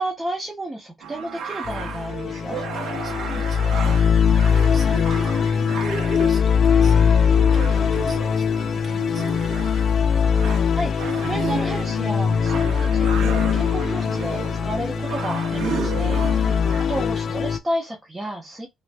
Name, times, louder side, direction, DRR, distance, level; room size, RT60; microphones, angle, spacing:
voice 1, 0.0-2.6 10.7-16.5 16.9-18.7, right 1 dB, 20° right, 1.0 m, -31 dB
sound 1, 1.0-17.3, right 7 dB, 80° right, 0.6 m, -34 dB
sound 2, 1.6-17.6, left 7 dB, 60° left, 0.4 m, -21 dB
voice 2, 3.0-9.6 16.0-16.6, right 4 dB, 45° right, 1.1 m, -39 dB
5.5 x 2.2 x 2.2 m
cardioid pair, 90°, 0 cm